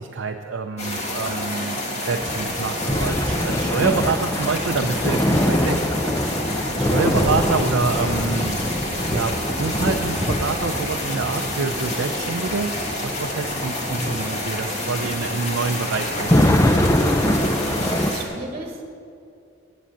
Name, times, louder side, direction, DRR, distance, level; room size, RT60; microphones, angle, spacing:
voice 1, 0.0-5.8 6.6-12.7 13.0-16.6, right 4 dB, 85° right, 4 dB, 0.6 m, -27 dB
sound 1, 0.8-18.2, left 1 dB, 35° left, 1.8 m, -28 dB
sound 2, 2.2-18.1, left 1 dB, 15° left, 0.6 m, -24 dB
voice 2, 17.5-18.8, right 2 dB, 35° right, 2 dB, 1.4 m, -35 dB
9.0 x 7.6 x 8.5 m, 2.5 s
head